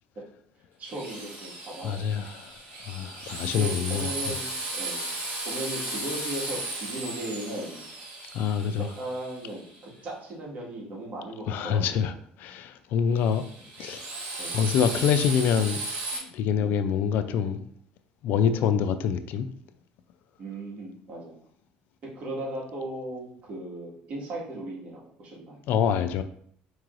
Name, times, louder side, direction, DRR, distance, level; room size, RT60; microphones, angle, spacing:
voice 1, 0.8-2.2 3.0-3.1 3.4-5.1 5.4-7.9 8.9-12.0 13.6-13.7 14.4-14.7 16.5-16.8 18.5-18.6 20.4-21.4 22.1-25.6, right 1 dB, 50° right, 1.6 m, -37 dB
Drill, 0.8-9.8 13.2-16.2, right 2 dB, 70° right, 1.6 m, -35 dB
voice 2, 1.8-4.1 8.3-8.9 11.5-12.1 12.4-13.4 13.8-14.0 14.5-15.8 16.1-17.7 18.2-19.5 25.7-26.2, left 7 dB, 70° left, 0.3 m, -26 dB
4.6 x 3.0 x 2.5 m
cardioid pair, 100°, 3 cm